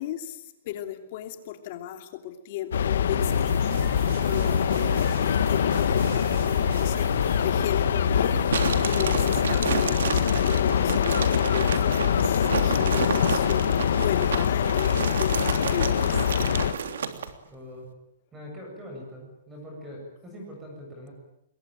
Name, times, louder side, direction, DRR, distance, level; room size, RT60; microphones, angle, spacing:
voice 1, 0.0-16.3, left 10 dB, 40° left, 7 dB, 3.0 m, -35 dB
sound 1, 2.7-16.7, left 8 dB, 75° left, 1.3 m, -24 dB
sound 2, 3.1-10.1, right 5 dB, 60° right, 3.0 m, -36 dB
sound 3, 8.5-17.3, right 6 dB, 90° right, 3.1 m, -31 dB
voice 2, 17.5-17.9 18.3-21.1, equal, 10° right, 0 dB, 7.7 m, -42 dB
26.5 x 22.0 x 9.1 m, 0.79 s
hypercardioid pair, 170°, 0 cm